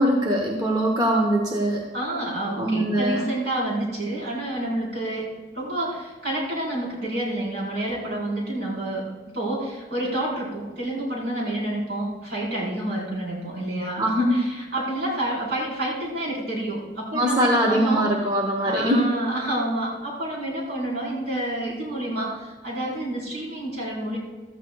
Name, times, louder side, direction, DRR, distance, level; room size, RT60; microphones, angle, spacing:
voice 1, 0.0-1.9 2.6-3.2 14.0-14.3 17.1-19.1, equal, 25° right, 0 dB, 1.0 m, -22 dB
voice 2, 1.9-5.3 5.5-9.1 9.3-18.1 18.6-24.2, right 1 dB, 65° right, -5 dB, 4.4 m, -29 dB
15.0 x 13.5 x 2.3 m, 1.3 s
head